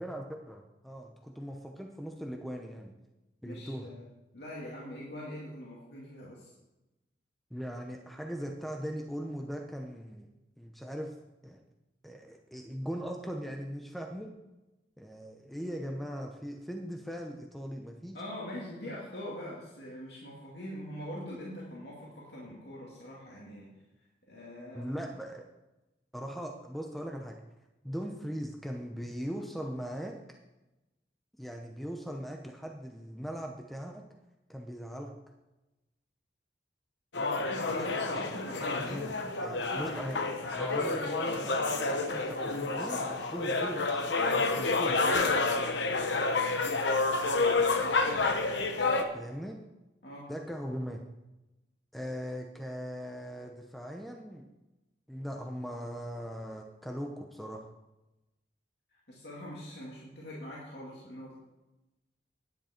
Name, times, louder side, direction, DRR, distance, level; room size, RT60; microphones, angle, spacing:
voice 1, 0.0-2.9 3.4-3.9 7.5-10.3 10.6-11.1 11.4-11.6 12.0-14.3 15.0-18.2 24.7-25.4 26.1-27.3 27.8-30.2 31.4-34.0 34.5-35.1 37.7-37.9 38.2-38.3 38.8-39.1 39.4-40.2 40.5-41.8 42.1-45.2 49.1-49.6 50.3-51.0 51.9-54.4 55.1-57.7, equal, ahead, 2 dB, 0.7 m, -39 dB
voice 2, 3.4-4.1 4.3-6.5 18.1-23.7 24.3-24.9 37.4-39.8 47.8-48.2 50.0-50.3 59.1-61.3, left 1 dB, 70° left, -5 dB, 2.4 m, -43 dB
sound 1, 37.1-49.0, left 3 dB, 85° left, 1.1 m, -29 dB
10.5 x 9.7 x 4.4 m, 1.0 s
head